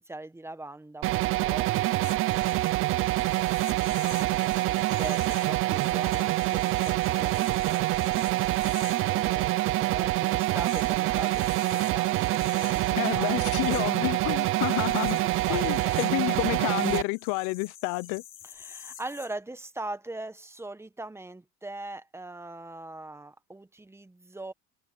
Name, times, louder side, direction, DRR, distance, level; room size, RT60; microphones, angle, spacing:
voice 1, 0.0-2.2 3.7-8.2 9.1-12.8 13.1-13.5 15.1-16.0 18.4-24.5, right 2 dB, 10° right, 1.3 m, -41 dB
sound 1, 1.0-17.0, right 17 dB, 40° right, 0.4 m, -26 dB
sound 2, 2.0-19.4, left 10 dB, 40° left, 7.1 m, -48 dB
sound 3, 11.7-16.9, right 24 dB, 80° right, 3.6 m, -51 dB
voice 2, 12.9-15.2 15.5-18.2, left 26 dB, 65° left, 0.6 m, -30 dB
open air
supercardioid pair, 120°, 34 cm